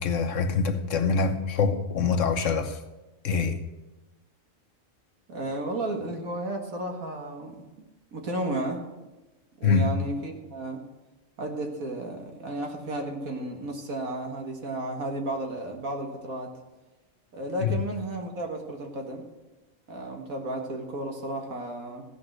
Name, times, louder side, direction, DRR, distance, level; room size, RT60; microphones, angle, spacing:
voice 1, 0.0-2.8 3.2-3.6 9.6-9.9 17.6-17.8, left 5 dB, 65° left, 1.3 m, -25 dB
voice 2, 5.3-7.6 8.1-8.8 9.6-10.8 11.4-16.5 17.3-19.2 19.9-22.1, right 1 dB, 90° right, 2.1 m, -33 dB
15.0 x 5.4 x 7.9 m
omnidirectional pair, 1.4 m